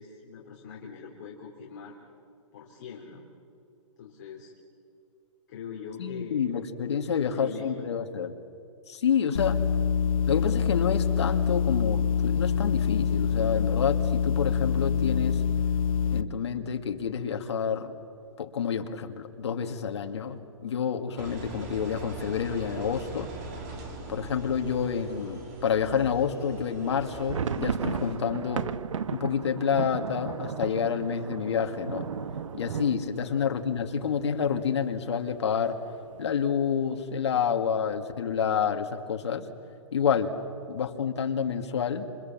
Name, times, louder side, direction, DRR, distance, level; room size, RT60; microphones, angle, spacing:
voice 1, 0.0-2.0 2.5-3.3 4.0-4.5 5.5-6.5 7.0-7.9 33.2-33.5, left 6 dB, 35° left, -2 dB, 3.1 m, -42 dB
voice 2, 6.0-8.3 8.9-9.6 10.3-15.4 16.1-17.9 18.4-23.3 24.1-28.7 29.1-32.1 32.5-35.8 36.2-39.5 39.9-40.3 40.7-42.1, left 7 dB, 55° left, 5 dB, 2.3 m, -28 dB
sound 1, 9.3-16.2, left 7 dB, 85° left, 1.3 m, -25 dB
Engine, 21.2-28.2, right 2 dB, 30° right, 3.3 m, -41 dB
sound 2, 26.9-34.7 35.0-35.1 35.4-35.6 36.1-36.6, right 7 dB, 70° right, 1.1 m, -35 dB
28.0 x 26.5 x 7.5 m, 2.5 s
hypercardioid pair, 175°, 17 cm